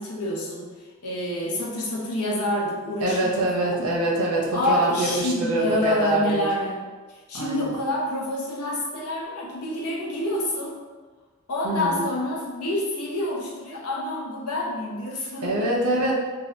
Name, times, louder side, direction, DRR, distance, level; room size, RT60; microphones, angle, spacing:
voice 1, 0.0-3.9 4.5-6.8 7.1-10.8 11.5-15.7, left 1 dB, 80° left, -3 dB, 0.7 m, -28 dB
voice 2, 3.0-6.4 7.3-7.8 11.6-12.0 15.4-16.1, right 1 dB, 75° right, -2 dB, 0.7 m, -24 dB
2.7 x 2.3 x 3.3 m, 1.3 s
head